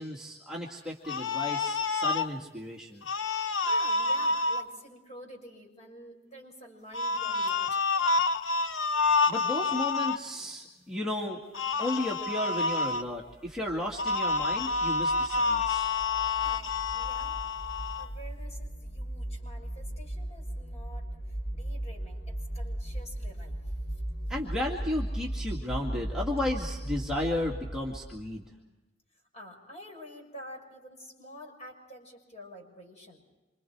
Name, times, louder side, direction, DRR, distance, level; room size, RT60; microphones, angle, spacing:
voice 1, 0.0-3.0 9.3-11.4 11.8-15.9 24.3-28.5, left 1 dB, 5° right, -4 dB, 2.2 m, -34 dB
sound 1, 1.0-2.3 3.0-4.6 6.9-10.2 11.5-13.0 14.0-18.1, left 3 dB, 80° left, 1.0 m, -28 dB
voice 2, 3.3-7.8 16.4-17.4 18.0-23.7 29.3-33.2, equal, 35° left, 1 dB, 6.6 m, -48 dB
sound 2, 13.1-28.3, right 1 dB, 60° left, 4.6 m, -37 dB
27.5 x 26.0 x 4.7 m, 1.1 s
head